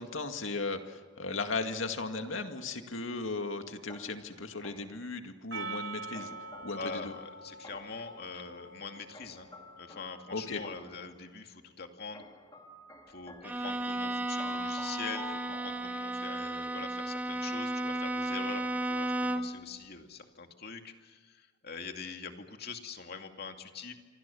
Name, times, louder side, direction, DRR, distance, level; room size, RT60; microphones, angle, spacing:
voice 1, 0.0-6.3 6.6-7.1 10.3-10.6, left 3 dB, 80° left, 6 dB, 2.1 m, -36 dB
sound 1, 3.9-5.1 6.1-8.1 9.1-11.1 12.1-16.4, left 2 dB, 20° left, 2.8 m, -50 dB
Percussion, 5.5-10.1, right 4 dB, 70° right, 2.9 m, -44 dB
voice 2, 6.7-9.5 9.8-12.2 13.1-24.0, left 5 dB, 55° left, 5 dB, 2.4 m, -43 dB
Bowed string instrument, 13.4-19.6, right 1 dB, 10° right, 1.7 m, -34 dB
27.5 x 24.5 x 7.1 m, 1.4 s
head